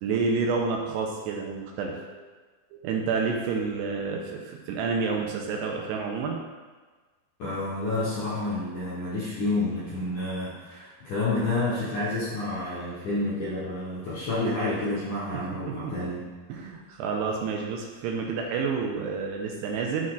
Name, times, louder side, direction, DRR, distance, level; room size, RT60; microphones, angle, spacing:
voice 1, 0.0-2.2 2.7-6.4 15.7-15.9 16.5-20.1, right 5 dB, 80° right, 0 dB, 2.6 m, -29 dB
voice 2, 7.4-16.2, left 2 dB, 65° left, -10 dB, 2.0 m, -29 dB
11.0 x 4.1 x 2.4 m, 1.3 s
omnidirectional pair, 5.1 m